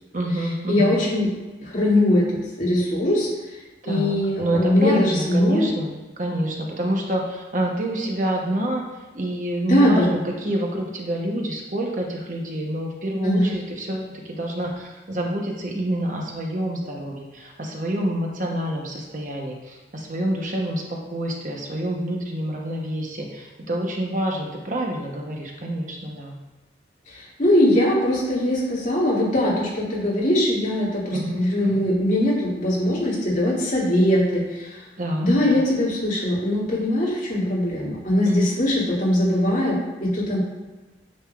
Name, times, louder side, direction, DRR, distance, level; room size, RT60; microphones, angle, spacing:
voice 1, 0.1-1.0 3.8-8.8 9.1-26.4 31.1-31.9 35.0-35.6 38.3-38.5, right 1 dB, 45° right, 0 dB, 0.9 m, -27 dB
voice 2, 0.7-1.3 1.6-2.3 2.6-3.3 3.9-5.7 9.6-10.1 13.2-13.5 27.1-34.8 35.2-40.4, left 1 dB, 45° left, -7 dB, 2.4 m, -21 dB
9.0 x 6.5 x 2.4 m, 1.2 s
head